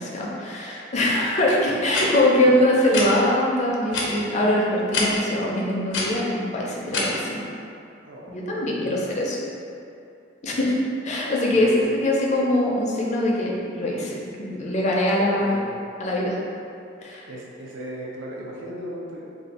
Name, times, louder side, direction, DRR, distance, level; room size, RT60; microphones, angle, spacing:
voice 1, 0.0-7.4 8.3-9.4 10.4-10.8 11.0-11.7 12.0-15.5 16.0-16.4 17.0-17.2, left 1 dB, 35° left, -3 dB, 0.5 m, -23 dB
sound 1, 1.9-2.0 2.9-3.1 3.9-4.1 4.9-5.1 5.9-6.0 6.9-7.0, left 3 dB, 85° left, 0.6 m, -25 dB
voice 2, 8.0-9.3 11.5-12.0 15.4-15.7 17.3-19.2, right 1 dB, 75° right, -4 dB, 0.6 m, -37 dB
2.5 x 2.3 x 4.1 m, 2.5 s
head